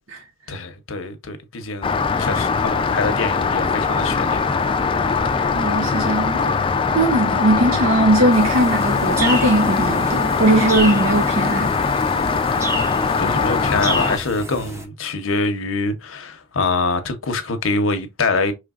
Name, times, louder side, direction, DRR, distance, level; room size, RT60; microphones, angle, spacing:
voice 1, 0.5-4.5 13.0-18.5, left 3 dB, 85° left, 0.8 m, -25 dB
Rain, 1.8-14.2, left 5 dB, 25° left, 0.4 m, -21 dB
voice 2, 5.5-6.5 6.9-11.7, right 1 dB, 85° right, 0.7 m, -19 dB
sound 1, 8.3-14.9, right 1 dB, 15° right, 0.6 m, -31 dB
5.0 x 3.2 x 2.4 m
head